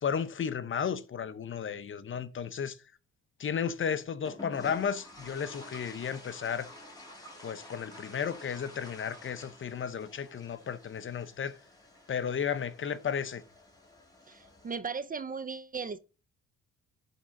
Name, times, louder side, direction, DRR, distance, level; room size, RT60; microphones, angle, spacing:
voice 1, 0.0-2.8 3.4-6.7 7.4-11.6 12.1-13.4, left 7 dB, 40° left, 0.8 m, -33 dB
sound 1, 4.2-14.8, left 1 dB, 15° left, 3.2 m, -50 dB
voice 2, 14.3-16.0, right 5 dB, 30° right, 0.6 m, -37 dB
11.0 x 3.7 x 5.2 m
cardioid pair, 90°, 30 cm